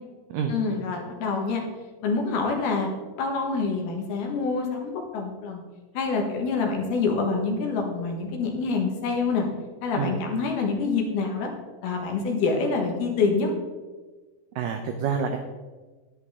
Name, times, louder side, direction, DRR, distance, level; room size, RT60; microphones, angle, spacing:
voice 1, 0.5-1.6 2.0-2.9 3.2-5.6 5.9-9.5 9.8-11.5 11.8-13.5, left 4 dB, 70° left, 2 dB, 3.2 m, -26 dB
voice 2, 14.6-15.4, right 6 dB, 85° right, 5 dB, 1.9 m, -27 dB
10.5 x 10.5 x 3.7 m, 1.3 s
omnidirectional pair, 4.9 m